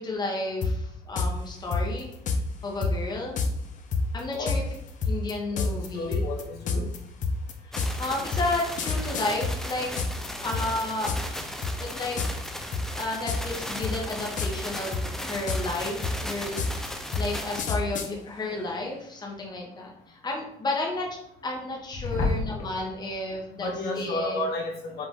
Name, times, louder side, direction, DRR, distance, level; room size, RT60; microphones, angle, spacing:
voice 1, 0.0-2.1 2.6-3.4 4.1-4.6 5.0-6.2 7.6-9.9 10.4-11.1 11.8-12.2 13.0-16.9 17.2-21.1 21.4-24.4, left 2 dB, 25° left, -1 dB, 1.0 m, -32 dB
sound 1, 0.6-0.7 1.2-1.3 1.7-2.4 2.8-2.9 3.4-3.5 3.9-10.3 10.5-11.4 11.6-11.9 12.2-12.5 12.7-13.6 13.8-14.7 14.9-18.1, left 4 dB, 50° left, 0.6 m, -27 dB
voice 2, 5.5-6.9 22.1-22.4 23.6-25.1, left 2 dB, 75° left, -2 dB, 1.2 m, -30 dB
sound 2, 7.7-17.6, equal, 5° left, 0.5 m, -36 dB
5.1 x 2.5 x 3.6 m, 0.75 s
cardioid pair, 110°, 17 cm